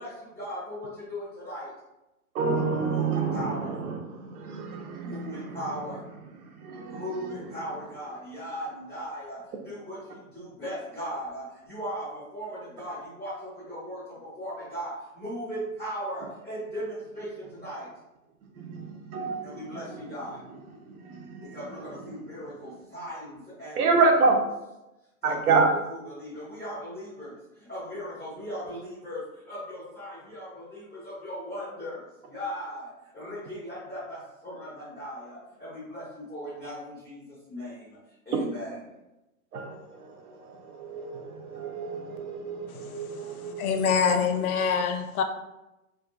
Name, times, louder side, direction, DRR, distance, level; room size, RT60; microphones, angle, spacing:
voice 1, 0.0-1.7 2.8-3.7 5.0-6.0 6.8-17.9 19.4-20.4 21.4-24.0 25.2-29.2 29.5-38.0 38.2-38.8, equal, ahead, -14 dB, 0.5 m, -38 dB
voice 2, 2.3-5.6 6.6-7.3 18.6-19.7 21.0-21.5 23.8-24.4 25.2-25.7 38.3-38.4 39.5-39.8 40.7-43.6, right 4 dB, 85° right, 3 dB, 0.7 m, -27 dB
voice 3, 42.7-45.2, left 6 dB, 80° left, 6 dB, 0.5 m, -26 dB
2.5 x 2.4 x 2.4 m, 0.96 s
hypercardioid pair, 175°, 43 cm